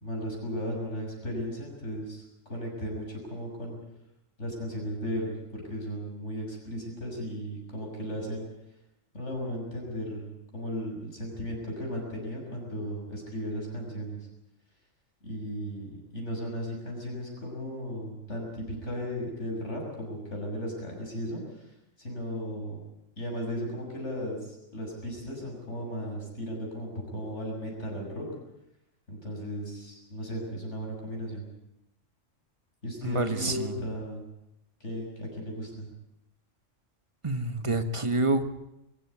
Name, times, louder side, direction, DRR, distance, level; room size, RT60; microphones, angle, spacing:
voice 1, 0.0-3.8 4.4-8.5 9.1-14.2 15.2-21.6 22.0-22.8 23.2-28.2 29.1-31.5 32.8-34.2 34.8-35.9, equal, 65° left, -1 dB, 6.8 m, -36 dB
voice 2, 33.0-33.7 37.2-38.4, right 2 dB, 25° right, 9 dB, 1.4 m, -27 dB
22.5 x 15.0 x 9.5 m, 0.87 s
omnidirectional pair, 1.3 m